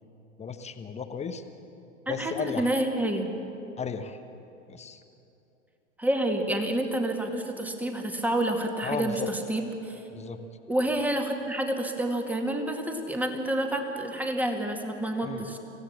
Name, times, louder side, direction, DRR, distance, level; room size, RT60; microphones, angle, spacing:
voice 1, 0.4-1.4 2.1-2.7 3.8-4.2 4.7-5.0 8.8-9.3 10.1-10.4 15.2-15.4, left 5 dB, 15° left, 8 dB, 1.1 m, -34 dB
voice 2, 2.1-3.3 6.0-10.0 10.7-15.6, right 1 dB, 5° right, 4 dB, 2.1 m, -28 dB
25.5 x 16.5 x 7.3 m, 2.9 s
figure-of-eight pair, 90°, 38 cm